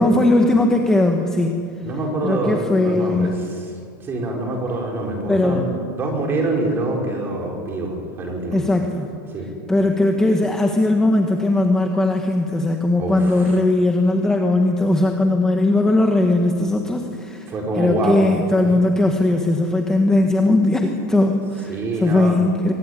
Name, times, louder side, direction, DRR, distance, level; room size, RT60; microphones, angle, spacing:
voice 1, 0.0-1.6 2.2-3.4 5.3-5.7 8.5-9.1 9.7-17.5 17.8-22.7, left 2 dB, 5° left, 2 dB, 1.5 m, -18 dB
voice 2, 1.8-8.6 9.3-9.5 13.0-13.6 17.5-18.3 18.6-18.7 21.7-22.4, right 2 dB, 20° right, 1 dB, 5.2 m, -25 dB
24.0 x 22.5 x 10.0 m, 2.5 s
supercardioid pair, 170°, 11 cm